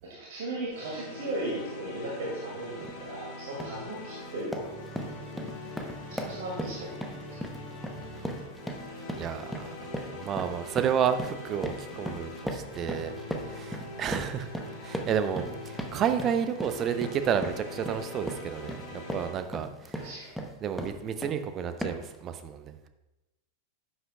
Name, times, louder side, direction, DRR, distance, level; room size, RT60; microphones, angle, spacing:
voice 1, 0.0-5.2 6.1-6.9 20.0-20.3, right 1 dB, 50° right, -5 dB, 2.4 m, -37 dB
sound 1, 0.7-19.3, left 2 dB, 45° left, 2.4 m, -43 dB
sound 2, 2.8-3.0 3.4-3.8 4.2-21.4 21.8-22.2, equal, ahead, 0.9 m, -38 dB
voice 2, 8.0-8.3 9.2-9.7 10.1-14.5 14.8-20.1 20.6-22.9, right 8 dB, 30° right, 9 dB, 0.6 m, -31 dB
11.0 x 8.2 x 2.4 m, 1.0 s
figure-of-eight pair, 90°, 0 cm